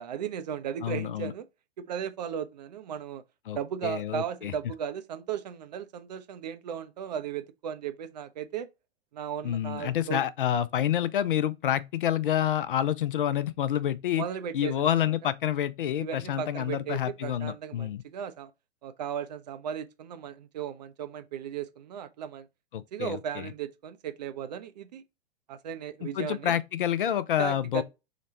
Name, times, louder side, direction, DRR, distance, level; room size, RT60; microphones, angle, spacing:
voice 1, 0.0-1.5 1.8-3.2 3.5-8.7 9.1-10.2 14.2-15.1 16.0-18.5 18.8-22.5 22.9-25.0 25.5-26.6 27.4-27.8, right 8 dB, 45° right, 0.4 m, -36 dB
voice 2, 0.8-1.3 3.5-3.6 3.8-4.5 9.4-14.3 14.5-18.0 22.7-23.5 26.0-27.8, left 10 dB, 55° left, 0.4 m, -28 dB
3.9 x 2.2 x 4.0 m
figure-of-eight pair, 105°, 32 cm